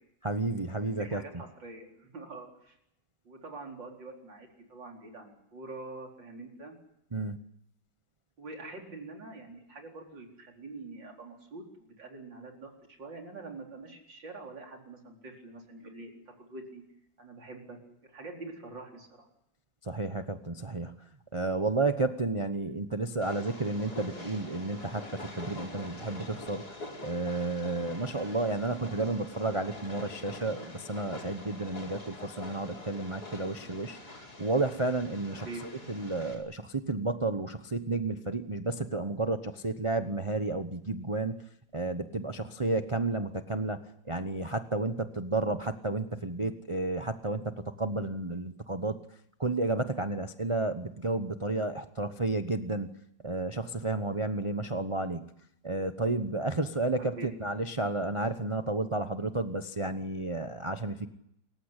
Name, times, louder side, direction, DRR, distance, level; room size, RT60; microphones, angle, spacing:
voice 1, 0.2-1.2 7.1-7.4 19.8-21.0 21.3-26.6 27.0-35.5 35.9-41.4 41.7-43.8 44.1-49.0 49.4-52.9 53.2-55.3 55.6-61.1, right 2 dB, 20° right, 8 dB, 0.8 m, -32 dB
voice 2, 0.8-2.8 3.2-6.8 8.4-12.7 13.0-16.8 17.2-19.3 35.3-35.7 57.0-57.3, right 3 dB, 80° right, 2 dB, 5.0 m, -45 dB
Train, 23.2-36.3, left 2 dB, 55° left, 5.4 m, -45 dB
28.0 x 15.5 x 9.9 m, 0.77 s
omnidirectional pair, 2.0 m